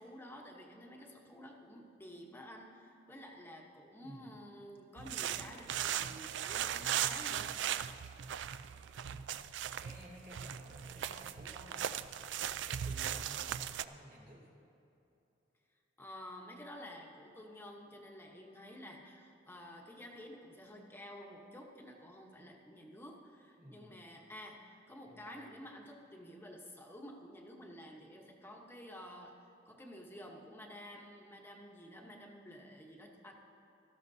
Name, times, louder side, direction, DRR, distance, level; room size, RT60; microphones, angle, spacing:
voice 1, 0.0-7.6 16.0-33.3, equal, 10° left, 0 dB, 1.0 m, -51 dB
sound 1, 5.0-13.8, right 10 dB, 65° right, 0.3 m, -38 dB
voice 2, 9.0-9.5 9.8-12.2 12.6-14.5 23.6-24.0 25.0-25.4, equal, 45° right, -5 dB, 2.5 m, -54 dB
17.5 x 13.5 x 2.7 m, 2.8 s
head